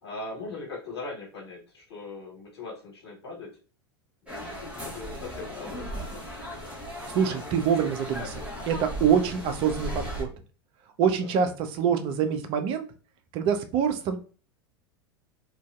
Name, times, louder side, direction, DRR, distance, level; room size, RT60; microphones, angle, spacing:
voice 1, 0.0-3.5 4.2-6.2 11.2-11.5, left 3 dB, 80° left, -3 dB, 1.2 m, -40 dB
sound 1, 4.3-10.2, equal, 10° right, 1.0 m, -37 dB
voice 2, 7.1-10.3 11.0-12.8 13.3-14.2, right 7 dB, 40° right, 7 dB, 0.4 m, -25 dB
2.6 x 2.2 x 2.3 m, 0.38 s
hypercardioid pair, 90°, 13 cm